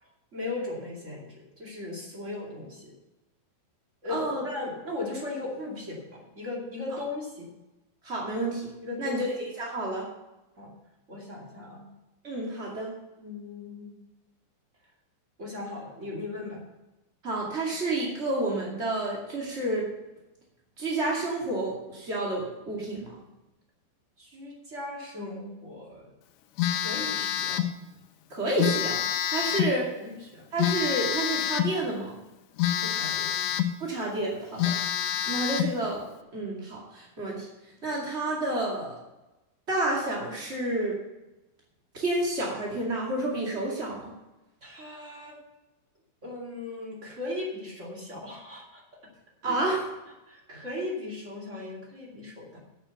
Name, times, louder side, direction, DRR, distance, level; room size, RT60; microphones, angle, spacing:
voice 1, 0.0-2.9 4.0-7.5 8.8-9.2 10.6-10.7 11.1-11.8 13.2-14.0 15.4-16.6 24.2-26.1 26.6-27.6 29.3-30.4 32.8-33.3 44.6-45.4 46.2-48.8 49.4-49.6 50.3-52.6, left 2 dB, 30° right, -2 dB, 1.4 m, -38 dB
voice 2, 4.1-4.4 8.0-8.7 9.0-10.1 12.2-12.9 17.2-19.9 20.8-23.1 28.3-29.8 30.5-32.2 33.8-36.1 36.3-37.5 37.8-38.9 39.7-41.0 41.9-44.1 49.4-49.9, right 2 dB, 45° right, -4 dB, 0.8 m, -30 dB
Telephone, 26.6-27.8 28.6-29.8 30.6-31.8 32.6-33.8 34.2-34.3 34.6-35.8, left 11 dB, 80° left, 2.6 m, -27 dB
9.1 x 8.6 x 6.9 m, 0.99 s
omnidirectional pair, 5.5 m